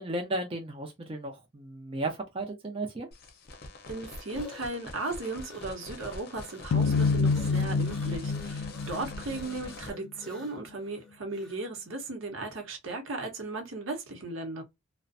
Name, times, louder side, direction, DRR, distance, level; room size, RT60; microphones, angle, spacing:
voice 1, 0.0-3.1 8.8-9.1, right 2 dB, 25° right, 0.5 m, -35 dB
sound 1, 3.1-9.9, left 2 dB, 50° left, 0.6 m, -44 dB
sound 2, 3.4-11.7, left 2 dB, ahead, 0.7 m, -52 dB
voice 2, 3.9-14.6, right 2 dB, 70° right, 0.8 m, -36 dB
sound 3, 6.7-9.9, left 4 dB, 85° left, 0.3 m, -27 dB
2.4 x 2.1 x 2.5 m
head